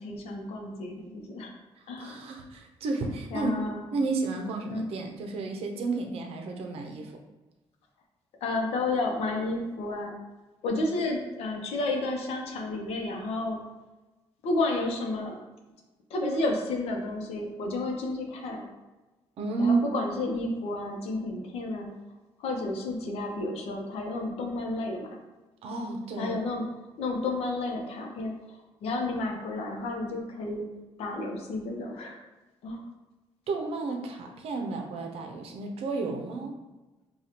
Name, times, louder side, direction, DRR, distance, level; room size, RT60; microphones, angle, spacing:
voice 1, 0.0-1.5 1.9-2.2 3.3-3.8 4.7-4.8 8.4-10.1 10.6-13.6 14.4-15.4 16.1-18.6 19.6-21.9 22.4-25.1 26.2-26.7 27.0-28.3 28.8-30.6 31.0-32.2 32.6-32.8, left 2 dB, 85° left, 2 dB, 0.7 m, -31 dB
voice 2, 2.0-3.6 3.9-7.1 19.4-19.9 25.6-26.4 33.5-36.5, right 3 dB, 75° right, 3 dB, 0.6 m, -31 dB
4.9 x 2.3 x 2.8 m, 1.1 s
cardioid pair, 155°, 10 cm